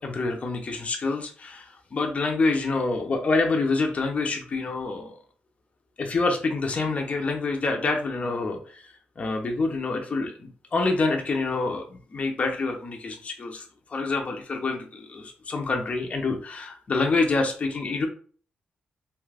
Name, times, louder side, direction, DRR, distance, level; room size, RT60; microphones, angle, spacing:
voice 1, 0.0-5.1 6.0-8.8 9.2-13.6 13.9-18.1, left 3 dB, 40° left, 3 dB, 0.6 m, -27 dB
2.8 x 2.4 x 3.3 m, 0.43 s
cardioid pair, 85°, 3 cm